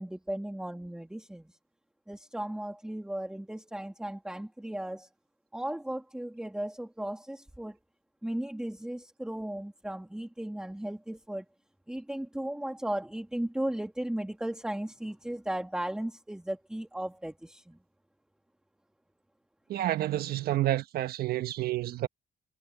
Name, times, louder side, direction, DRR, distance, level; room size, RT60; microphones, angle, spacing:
voice 1, 0.0-1.6 2.1-5.1 5.5-7.8 8.2-11.5 11.9-17.8, right 1 dB, 5° right, 2.1 m, -36 dB
voice 2, 19.7-22.1, right 14 dB, 65° right, 1.4 m, -29 dB
cardioid pair, 110°, 17 cm